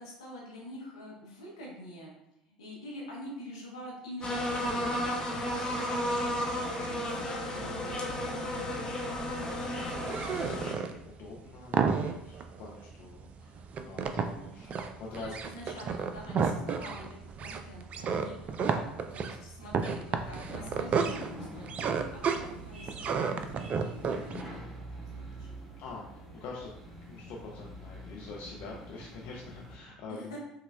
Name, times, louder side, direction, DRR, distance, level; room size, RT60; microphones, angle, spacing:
voice 1, 0.0-2.1 2.6-5.1 5.7-8.4 15.1-17.0 17.4-24.0 24.3-24.5 24.9-25.0 25.3-25.8 30.1-30.4, equal, 75° left, -2 dB, 1.0 m, -46 dB
sound 1, 4.2-10.7, left 1 dB, 25° left, 0.8 m, -33 dB
voice 2, 9.2-11.8 12.1-15.3 18.5-18.7 25.8-26.7 27.1-30.4, left 3 dB, 55° left, -2 dB, 0.5 m, -45 dB
sound 2, 9.2-24.4, right 5 dB, 40° right, 0.3 m, -32 dB
sound 3, 20.1-29.8, right 1 dB, 5° right, 0.9 m, -45 dB
5.5 x 2.1 x 2.2 m, 0.82 s
figure-of-eight pair, 65°, 3 cm